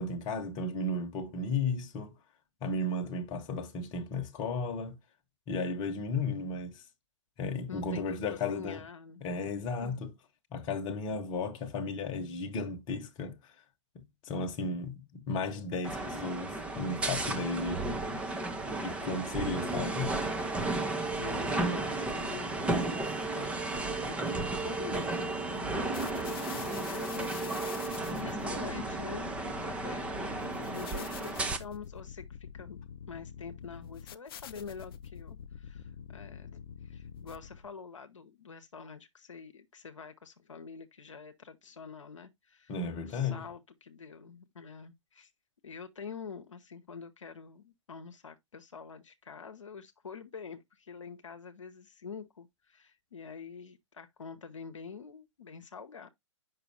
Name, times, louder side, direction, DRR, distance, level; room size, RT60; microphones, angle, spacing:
voice 1, 0.0-2.1 2.6-5.0 5.5-6.8 7.4-8.8 9.2-10.1 10.5-13.5 13.9-17.9 18.8-20.1 42.7-43.5, left 3 dB, 25° left, 1.1 m, -34 dB
voice 2, 7.7-9.2 9.8-10.1 21.2-26.2 26.5-32.8 33.1-45.3 45.6-56.1, left 6 dB, 75° left, 0.9 m, -46 dB
sound 1, 15.8-31.6, right 2 dB, 5° right, 0.6 m, -33 dB
sound 2, 25.9-37.7, left 8 dB, 50° left, 0.5 m, -46 dB
6.8 x 5.6 x 2.7 m
figure-of-eight pair, 120°, 16 cm